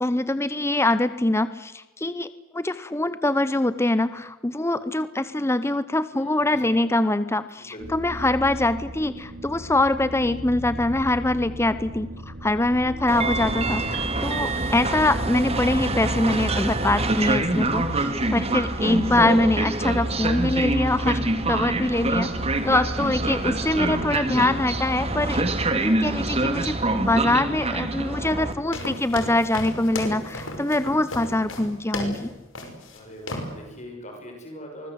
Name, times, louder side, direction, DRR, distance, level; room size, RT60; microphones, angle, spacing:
voice 1, 0.0-21.2 21.5-22.3 22.6-25.4 25.8-32.3, left 2 dB, 15° left, 13 dB, 0.8 m, -24 dB
voice 2, 6.1-7.1 7.5-8.0 23.0-24.0 24.3-24.7 32.9-34.9, equal, 35° left, 2 dB, 6.3 m, -42 dB
sound 1, 7.8-24.0, right 1 dB, 60° right, 3.5 m, -36 dB
Train, 13.1-28.5, right 2 dB, 30° right, 2.3 m, -26 dB
sound 2, 28.7-32.2 32.5-33.0 33.3-33.5, left 1 dB, 75° left, 5.4 m, -33 dB
24.5 x 21.0 x 8.1 m, 1.0 s
head